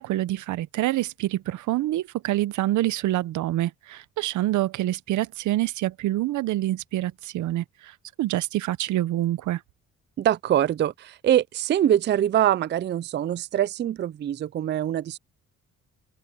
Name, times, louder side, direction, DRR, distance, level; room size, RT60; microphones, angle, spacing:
voice 1, 0.0-9.6, right 15 dB, 80° right, 0.7 m, -26 dB
voice 2, 10.2-15.2, right 11 dB, 40° right, 0.4 m, -24 dB
open air
cardioid pair, 90°, 30 cm